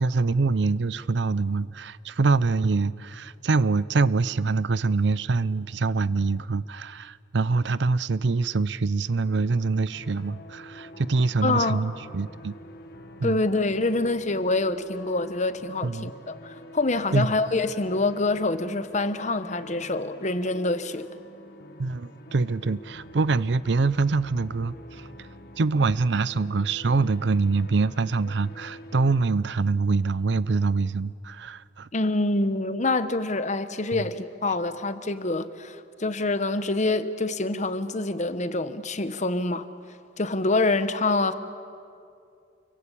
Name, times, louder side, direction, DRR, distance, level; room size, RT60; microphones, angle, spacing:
voice 1, 0.0-12.5 13.2-13.4 15.8-16.1 17.1-17.3 21.8-25.3 25.6-31.9 33.9-34.0, right 3 dB, 70° right, 0.6 m, -25 dB
sound 1, 9.9-29.2, left 1 dB, 55° left, 1.4 m, -46 dB
voice 2, 11.4-11.8 13.2-21.1 31.9-39.7 40.2-41.3, left 2 dB, 40° left, 1.2 m, -26 dB
29.5 x 23.5 x 8.5 m
head